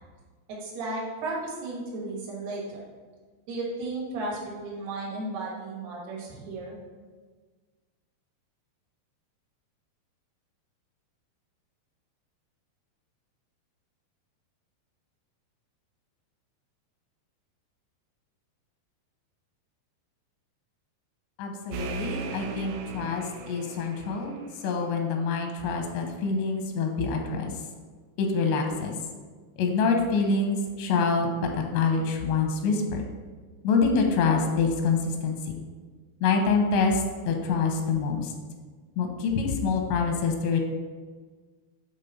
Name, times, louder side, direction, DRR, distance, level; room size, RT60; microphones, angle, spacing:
voice 1, 0.5-2.8 3.5-6.8, right 2 dB, 70° right, -5 dB, 3.5 m, -34 dB
voice 2, 21.4-24.4 24.6-27.5 28.2-28.9 29.6-33.0 33.6-35.0 35.2-35.4 36.2-37.0 37.2-38.3 39.0-40.6, left 4 dB, 85° left, 3 dB, 3.0 m, -26 dB
sound 1, 21.7-25.2, right 4 dB, 85° right, 2.2 m, -38 dB
8.2 x 3.5 x 5.5 m, 1.4 s
omnidirectional pair, 5.0 m